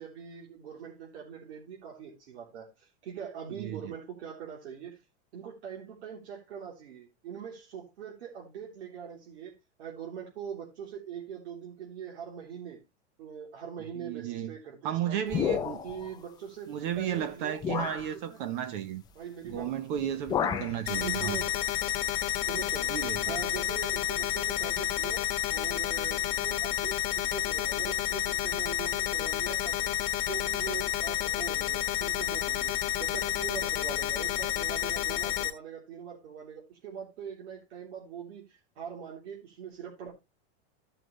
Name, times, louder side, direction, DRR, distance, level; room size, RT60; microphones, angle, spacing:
voice 1, 0.0-5.0 5.3-9.5 9.8-12.8 13.2-15.4 15.8-17.6 18.3-18.4 19.2-19.7 20.4-20.6 20.9-21.6 22.4-25.2 25.5-29.9 30.3-40.1, right 8 dB, 75° right, 3.5 m, -42 dB
voice 2, 3.6-3.9 14.0-14.5 14.8-15.8 16.7-19.0 19.4-21.4 22.9-23.3, right 10 dB, 50° right, 1.0 m, -33 dB
sound 1, 15.3-16.1 17.0-17.1 17.6-18.1 19.5-19.7 20.0-20.8, left 8 dB, 10° left, 0.5 m, -31 dB
sound 2, 20.9-35.5, left 13 dB, 25° left, 1.2 m, -30 dB
14.5 x 6.0 x 3.2 m
supercardioid pair, 165°, 33 cm